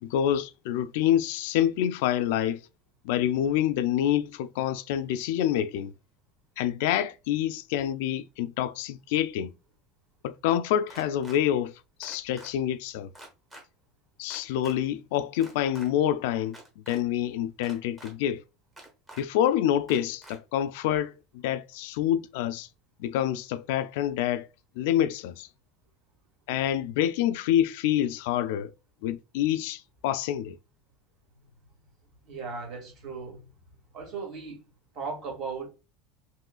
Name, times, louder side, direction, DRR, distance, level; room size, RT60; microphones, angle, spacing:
voice 1, 0.0-2.6 3.0-5.9 6.6-9.5 10.2-11.7 12.0-13.1 14.2-16.6 16.9-18.4 19.2-22.7 23.0-24.5 24.8-25.5 26.5-28.7 29.0-30.6, left 11 dB, 70° left, 0.3 m, -27 dB
sound 1, 10.9-11.4 12.0-12.5 13.1-13.6 14.3-14.7 15.3-15.9 16.5-17.0 17.6-18.1 18.8-19.2 19.9-20.4, right 1 dB, 10° right, 1.1 m, -47 dB
voice 2, 32.2-33.5 33.9-34.6 34.9-35.7, right 4 dB, 40° right, 1.9 m, -37 dB
5.4 x 3.1 x 2.3 m
cardioid pair, 175°, 0 cm